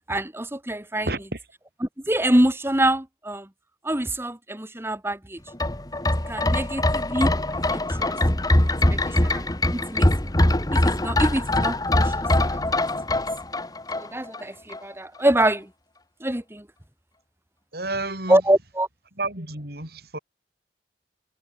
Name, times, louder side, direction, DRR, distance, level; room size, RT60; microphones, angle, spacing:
voice 1, 0.1-1.1 1.8-3.5 3.8-5.4 6.3-8.1 8.9-10.1 10.7-12.9 13.1-13.2 13.9-15.7 16.2-16.7 18.3-18.9, right 1 dB, 15° right, 2.3 m, -25 dB
voice 2, 1.1-1.4 17.7-18.4 19.2-20.2, right 2 dB, 60° right, 7.1 m, -30 dB
sound 1, 5.5-14.4 14.7-14.8, left 1 dB, 20° left, 1.6 m, -22 dB
head